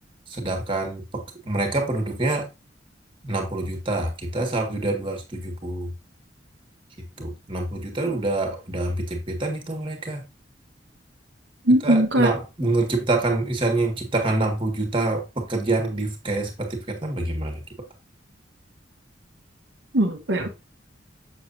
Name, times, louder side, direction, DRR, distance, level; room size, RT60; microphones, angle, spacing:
voice 1, 0.3-2.5 3.2-5.9 7.2-10.2 11.8-17.6, right 2 dB, 25° right, 1.6 m, -26 dB
voice 2, 11.7-12.3 19.9-20.5, right 1 dB, 65° right, 1.0 m, -19 dB
7.0 x 6.5 x 2.6 m
head